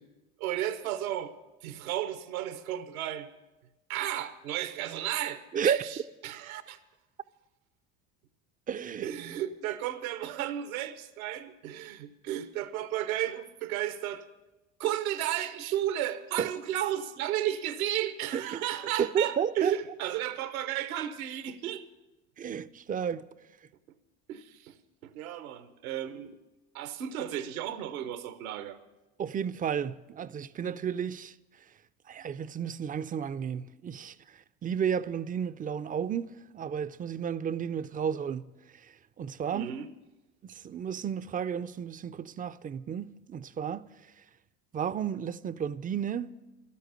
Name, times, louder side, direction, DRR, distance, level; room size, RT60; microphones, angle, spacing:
voice 1, 0.4-1.3 1.6-3.3 3.9-6.0 6.2-6.8 9.0-14.2 14.8-21.8 24.3-24.8 25.0-26.4 26.7-28.8 39.5-39.9, right 12 dB, 80° right, 1.0 m, -33 dB
voice 2, 5.5-5.8 8.7-9.1 16.4-16.5 18.3-18.6 19.0-19.7 22.4-23.3 29.2-31.3 32.1-38.5 38.8-39.7 40.4-43.9 44.7-46.3, right 8 dB, 20° right, 0.4 m, -32 dB
12.5 x 8.4 x 9.2 m
hypercardioid pair, 70°, 42 cm